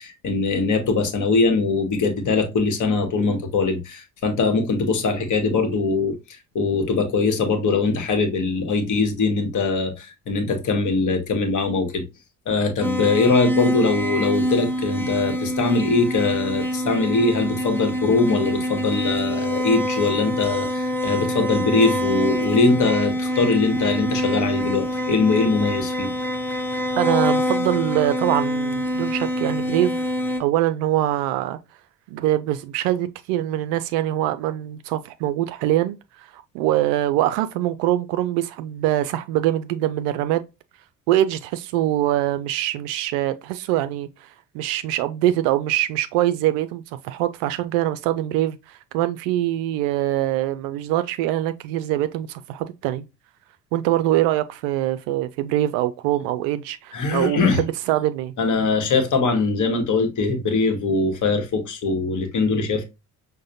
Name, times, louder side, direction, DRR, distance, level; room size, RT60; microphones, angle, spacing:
voice 1, 0.0-6.2 6.5-12.0 12.5-26.1 56.9-57.6 58.4-62.8, left 3 dB, 40° left, 1.2 m, -22 dB
sound 1, 12.8-30.4, equal, 5° left, 0.5 m, -25 dB
voice 2, 27.0-30.1 30.4-31.6 32.1-40.4 41.1-53.0 53.7-58.3, right 13 dB, 50° right, 0.4 m, -23 dB
6.1 x 2.2 x 2.5 m
figure-of-eight pair, 50°, 46 cm